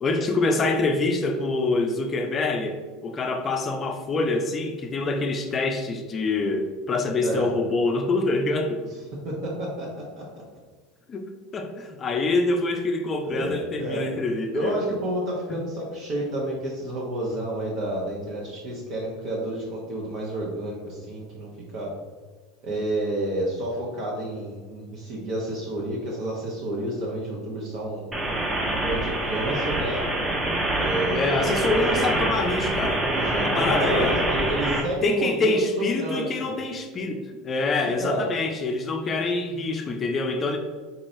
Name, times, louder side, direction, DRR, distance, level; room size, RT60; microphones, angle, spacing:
voice 1, 0.0-8.8 11.1-14.9 31.1-33.1 33.4-34.2 35.0-40.6, left 3 dB, 30° left, 4 dB, 0.5 m, -25 dB
voice 2, 7.2-7.5 9.2-10.2 13.2-14.1 14.5-21.5 21.7-21.9 22.6-28.0 28.7-30.1 30.7-31.5 31.9-32.1 33.0-36.6 37.8-38.3, right 1 dB, 55° right, -4 dB, 0.9 m, -30 dB
sound 1, 28.1-34.8, right 1 dB, 15° right, 0.8 m, -25 dB
4.0 x 3.0 x 2.6 m, 1.4 s
hypercardioid pair, 85°, 0 cm